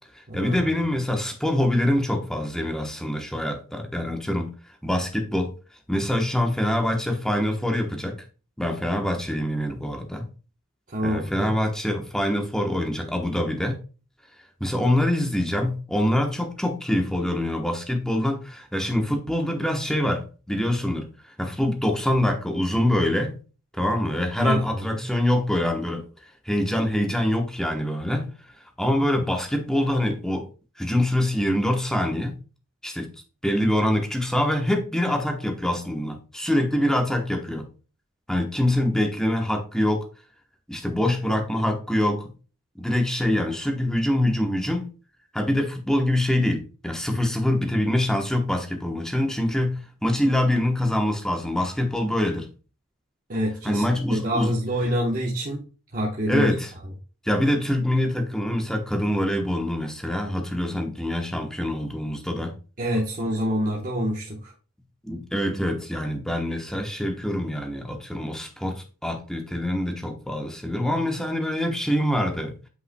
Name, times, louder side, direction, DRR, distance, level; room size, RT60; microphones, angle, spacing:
voice 1, 0.3-4.5 4.8-5.5 5.9-8.2 8.6-10.3 11.0-13.8 14.6-21.1 21.4-23.4 23.7-26.0 26.5-28.3 28.8-30.4 30.8-32.4 32.8-33.1 33.4-37.7 38.3-40.0 40.7-42.3 42.8-44.9 45.3-52.5 53.6-54.5 56.3-56.7 57.3-62.5 65.0-72.5, left 1 dB, 5° left, 1.0 m, -25 dB
voice 2, 10.9-11.5 24.4-25.0 53.3-53.8 54.1-55.7 55.9-56.5 62.8-64.5, equal, 40° right, 1.0 m, -26 dB
8.2 x 5.5 x 2.2 m
head